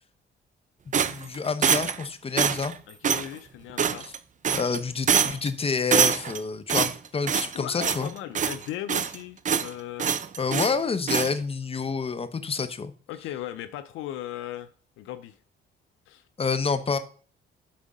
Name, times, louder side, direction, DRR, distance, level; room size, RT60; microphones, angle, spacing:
voice 1, 0.9-2.7 4.0-4.1 4.5-8.1 10.4-12.9 16.4-17.0, left 5 dB, 30° left, 0.9 m, -28 dB
sound 1, 0.9-2.0 2.4-2.7 3.0-3.3 3.8-4.2 4.4-4.8 5.1-5.5 5.9-6.4 6.7-7.6 7.8-8.1 8.4-9.2 9.5-9.7 10.0-10.8 11.1-11.3, right 7 dB, 40° right, 0.6 m, -24 dB
voice 2, 2.9-4.1 7.5-10.1 13.1-14.7 15.0-15.4 16.1-16.2, left 12 dB, 90° left, 0.6 m, -37 dB
7.5 x 3.6 x 5.3 m
cardioid pair, 90°, 20 cm